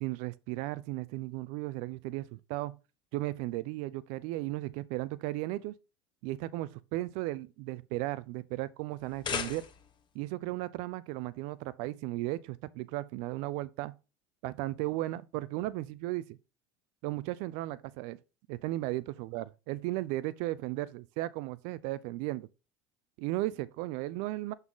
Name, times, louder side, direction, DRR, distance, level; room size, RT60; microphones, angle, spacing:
voice 1, 0.0-2.8 3.1-5.7 6.2-9.7 10.1-13.9 14.4-16.4 17.0-18.2 18.5-22.5 23.2-24.5, right 17 dB, 65° right, 0.4 m, -35 dB
sound 1, 8.9-10.1, left 7 dB, 35° left, 1.1 m, -37 dB
7.1 x 4.0 x 3.7 m
hypercardioid pair, 80°, 13 cm